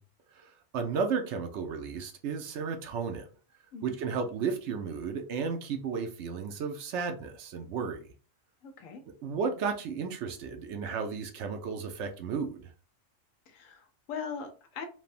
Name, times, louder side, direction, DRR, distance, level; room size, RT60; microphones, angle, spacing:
voice 1, 0.7-3.3 3.8-8.1 9.2-12.6, right 5 dB, 70° right, 0.8 m, -33 dB
voice 2, 3.7-4.0 8.6-9.0 13.5-14.9, left 6 dB, 85° left, 1.0 m, -40 dB
3.2 x 2.1 x 2.4 m
omnidirectional pair, 1.3 m